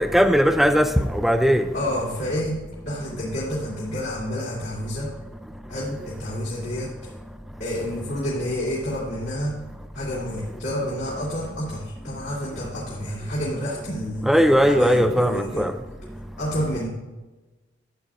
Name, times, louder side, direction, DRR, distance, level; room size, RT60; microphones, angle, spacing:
voice 1, 0.0-1.6 14.3-15.7, equal, ahead, 7 dB, 0.4 m, -18 dB
voice 2, 1.7-5.1 5.7-6.9 7.6-9.6 9.9-15.7 16.4-16.9, equal, 60° left, -9 dB, 2.9 m, -29 dB
13.5 x 8.3 x 2.5 m, 1.2 s
head